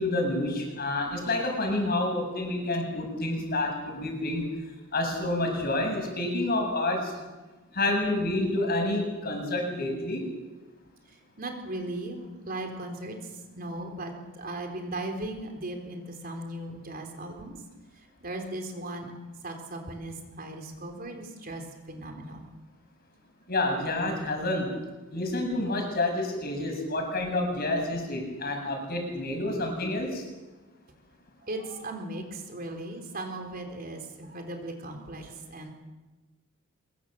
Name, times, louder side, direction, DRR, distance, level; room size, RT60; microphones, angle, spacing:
voice 1, 0.0-4.5 4.9-7.1 7.7-10.3 23.5-24.8 25.1-30.2, left 2 dB, 45° left, 3 dB, 7.2 m, -28 dB
voice 2, 11.4-13.2 13.6-17.6 18.2-19.1 19.4-22.5 31.4-35.7, right 1 dB, 45° right, 4 dB, 3.9 m, -37 dB
24.5 x 22.5 x 7.6 m, 1.2 s
head